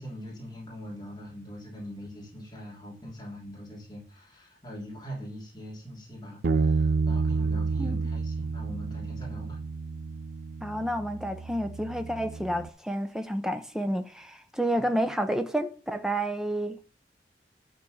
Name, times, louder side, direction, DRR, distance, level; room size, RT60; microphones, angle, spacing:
voice 1, 0.0-9.6 14.7-14.9, equal, 25° left, 3.3 m, -42 dB
Bass guitar, 6.4-12.7, right 4 dB, 70° right, 0.5 m, -30 dB
voice 2, 10.6-16.8, right 1 dB, 5° right, 0.9 m, -30 dB
11.5 x 4.3 x 6.6 m
head